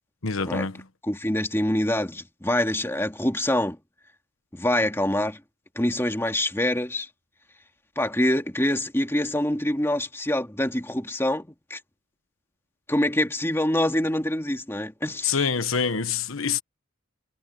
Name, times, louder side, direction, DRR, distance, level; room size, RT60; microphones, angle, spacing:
voice 1, 0.2-0.8 15.2-16.6, left 6 dB, 90° left, 1.2 m, -26 dB
voice 2, 1.0-3.8 4.5-5.4 5.8-7.1 8.0-11.8 12.9-15.3, left 1 dB, 10° left, 2.2 m, -25 dB
head